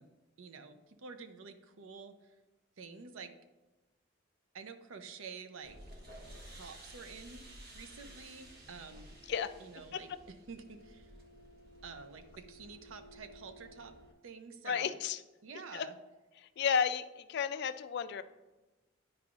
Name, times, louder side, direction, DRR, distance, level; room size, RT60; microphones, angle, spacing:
voice 1, 0.0-2.3 2.8-3.3 4.5-5.8 6.5-9.1 9.6-11.1 11.8-13.9 14.2-15.0 15.4-16.0, right 5 dB, 75° right, 9 dB, 0.6 m, -49 dB
sound 1, 5.6-14.1, right 1 dB, 50° right, 0.9 m, -53 dB
voice 2, 14.6-15.2 15.7-15.9 16.4-18.2, left 7 dB, 55° left, 12 dB, 0.3 m, -33 dB
10.0 x 4.8 x 2.4 m, 1.1 s
head